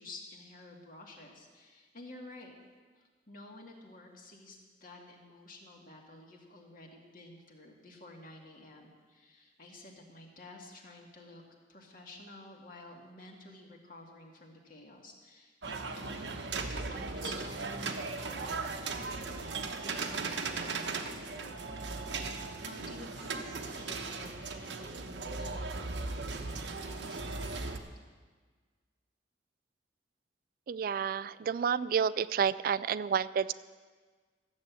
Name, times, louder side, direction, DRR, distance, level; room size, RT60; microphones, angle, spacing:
voice 1, 0.0-2.5 3.0-11.4 11.7-16.3 16.5-22.1 22.6-27.2, left 2 dB, 50° left, 0 dB, 2.1 m, -51 dB
sound 1, 15.6-27.8, right 3 dB, 90° right, 1.1 m, -37 dB
voice 2, 30.7-33.5, right 7 dB, 55° right, 17 dB, 0.3 m, -30 dB
14.0 x 7.7 x 8.3 m, 1.5 s
head